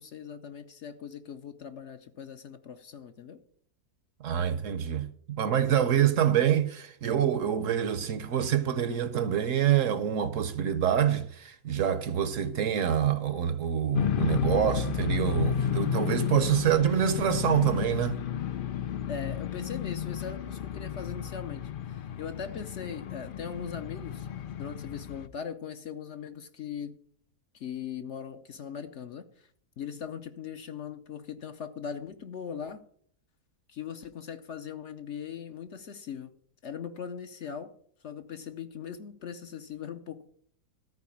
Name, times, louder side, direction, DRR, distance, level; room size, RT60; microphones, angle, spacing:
voice 1, 0.0-3.4 19.1-24.3 24.6-27.0 27.5-29.5 29.8-32.8 33.7-36.3 36.6-37.7 38.0-40.3, left 7 dB, 55° left, 0.9 m, -40 dB
voice 2, 4.2-18.2, right 9 dB, 60° right, 1.0 m, -26 dB
sound 1, 13.9-25.3, left 9 dB, 85° left, 0.4 m, -32 dB
13.5 x 4.6 x 8.4 m
omnidirectional pair, 1.6 m